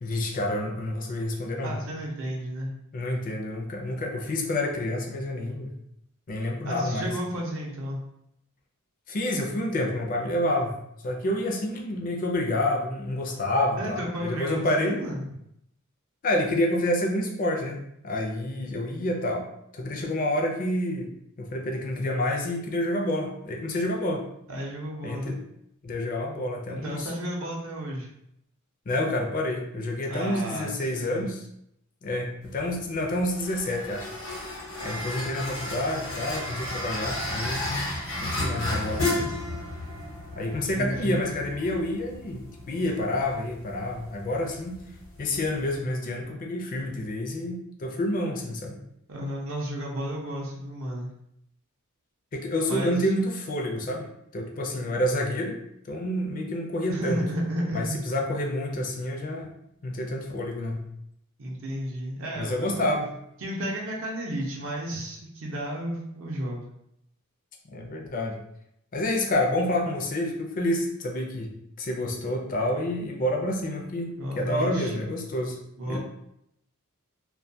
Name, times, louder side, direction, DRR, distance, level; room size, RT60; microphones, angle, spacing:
voice 1, 0.0-1.8 2.9-5.7 6.3-7.1 9.1-10.8 11.0-15.0 16.2-19.4 19.7-21.1 21.4-24.2 25.0-25.4 25.8-27.1 28.9-31.4 32.0-34.1 34.8-37.9 38.2-39.3 40.3-44.8 45.2-48.8 52.3-54.1 54.3-55.5 55.9-57.2 57.7-59.5 59.8-60.9 62.4-63.1 67.7-68.4 68.9-71.5 71.8-75.6 75.9-76.0, left 1 dB, 40° left, 1 dB, 0.4 m, -28 dB
voice 2, 1.6-2.7 6.6-8.0 13.8-15.2 24.5-25.4 26.7-28.1 30.1-31.3 40.6-41.2 49.1-51.1 52.7-53.0 56.9-58.0 61.4-62.9 63.4-66.7 74.2-75.0 75.8-76.0, equal, 60° right, -2 dB, 0.6 m, -32 dB
sound 1, 32.4-45.8, left 1 dB, 80° left, 0.8 m, -34 dB
2.2 x 2.1 x 2.6 m, 0.77 s
head